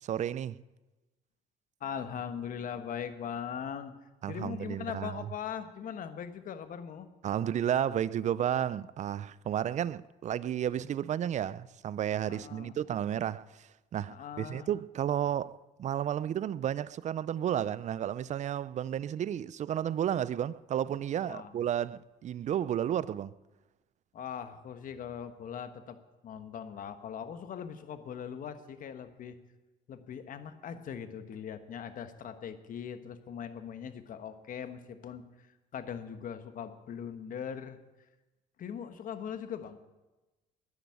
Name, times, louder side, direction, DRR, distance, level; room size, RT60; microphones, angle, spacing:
voice 1, 0.0-0.6 4.2-5.3 7.2-23.3, right 10 dB, 45° right, 0.5 m, -32 dB
voice 2, 1.8-3.9 4.3-7.1 12.3-12.8 14.1-14.7 21.3-21.5 24.1-26.0 26.2-29.4 29.9-37.8 38.6-39.8, left 8 dB, 55° left, 1.3 m, -40 dB
10.5 x 10.0 x 8.6 m
cardioid pair, 110°, 17 cm